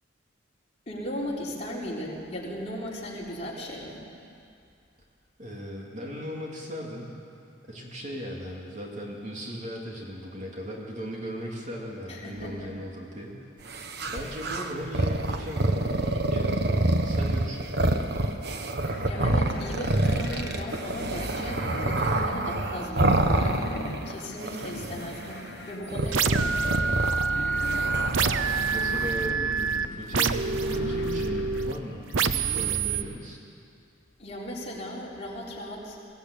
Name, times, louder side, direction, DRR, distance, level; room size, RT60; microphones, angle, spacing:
voice 1, 0.9-4.1 12.1-12.7 19.0-26.8 34.2-36.0, equal, 35° left, -4 dB, 4.2 m, -37 dB
voice 2, 5.4-7.2 7.7-13.4 13.7-17.9 28.7-33.4, equal, 40° right, -2 dB, 3.0 m, -38 dB
sound 1, 13.7-24.1 24.4-25.4 25.9-29.1, right 1 dB, 55° right, 1.3 m, -27 dB
sound 2, 18.8-32.8, left 2 dB, 55° left, 1.0 m, -40 dB
sound 3, 26.1-31.7 32.1-33.0, right 5 dB, 90° right, 0.7 m, -27 dB
22.5 x 16.0 x 8.7 m, 2.5 s
head